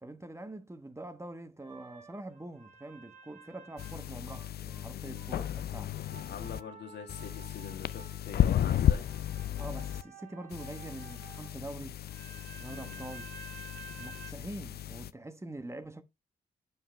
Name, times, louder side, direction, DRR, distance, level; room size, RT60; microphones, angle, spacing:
voice 1, 0.0-6.0 9.6-12.0 12.6-13.3 14.0-16.0, right 2 dB, 15° right, 1.1 m, -44 dB
sound 1, 1.6-4.9 5.1-11.5 12.1-14.3, right 5 dB, 45° right, 3.0 m, -52 dB
sound 2, 3.8-6.6 7.1-10.0 10.5-15.1, left 10 dB, 65° left, 0.5 m, -34 dB
voice 2, 4.9-5.3 6.3-9.1 12.7-13.1 13.9-14.0, left 7 dB, 80° left, 1.9 m, -44 dB
11.0 x 5.2 x 3.3 m
cardioid pair, 70°, 18 cm